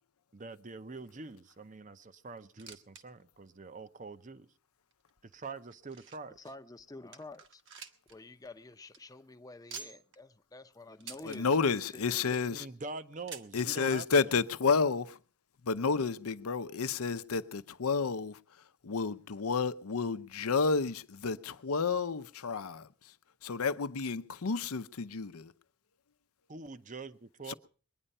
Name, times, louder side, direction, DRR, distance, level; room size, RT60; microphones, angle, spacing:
voice 1, 0.3-4.5 5.2-6.4 12.5-14.0 26.5-27.5, right 3 dB, 35° right, 0.7 m, -45 dB
sound 1, 2.4-3.0 3.3-3.4 4.1-4.2 4.9-6.4 6.8-6.9 7.1-8.2 8.5-8.6 8.8-9.0 9.7-10.2 11.0-11.4 12.0-12.5 13.3-13.7 14.6-14.7 14.9-15.0 15.8-15.9, right 6 dB, 55° right, 1.2 m, -48 dB
voice 2, 6.4-7.6 8.1-12.4, left 2 dB, 15° left, 0.6 m, -49 dB
voice 3, 11.3-12.7 13.5-15.2 15.6-18.4 18.8-23.1 23.4-25.5 27.5-27.6, left 5 dB, 85° left, 0.7 m, -31 dB
22.0 x 10.0 x 5.4 m
head